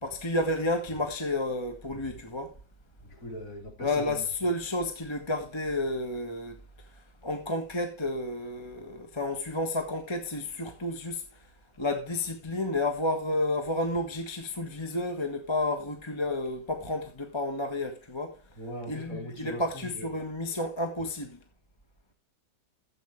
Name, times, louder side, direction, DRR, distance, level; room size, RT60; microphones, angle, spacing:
voice 1, 0.0-2.5 3.8-6.5 7.2-11.2 11.8-18.3 18.9-21.4, left 2 dB, 15° left, 1.3 m, -31 dB
voice 2, 3.0-4.6 18.5-20.2 21.0-21.1, equal, 50° left, 4.1 m, -41 dB
13.5 x 8.1 x 3.3 m
omnidirectional pair, 1.8 m